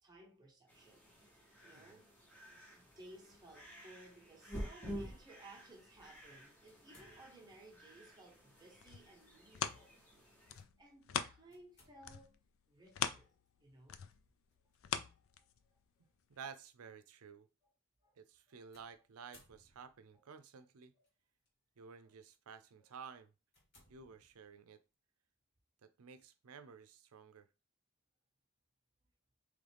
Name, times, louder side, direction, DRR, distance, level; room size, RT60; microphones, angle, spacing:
voice 1, 0.0-2.3 2.7-12.4 12.7-13.3 13.6-14.0 15.0-15.1 15.4-15.5 18.0-18.1 18.5-18.7 20.1-20.2, right 2 dB, 20° right, 1.1 m, -59 dB
sound 1, 0.7-10.6, equal, 10° left, 1.0 m, -51 dB
sound 2, 6.7-7.7 8.9-9.3 9.8-9.9 11.5-12.4 14.5-14.8 15.6-15.7 18.7-20.1 21.0-21.5 22.1-22.3 22.8-22.9 23.5-24.7, left 1 dB, 50° left, 2.1 m, -67 dB
sound 3, 8.7-11.7 12.0-15.8 16.3-16.4, left 8 dB, 65° left, 0.4 m, -42 dB
voice 2, 16.3-17.5 18.2-20.9 21.8-23.3 23.9-24.8 25.8-27.5, right 6 dB, 90° right, 0.5 m, -53 dB
3.9 x 3.2 x 3.4 m
head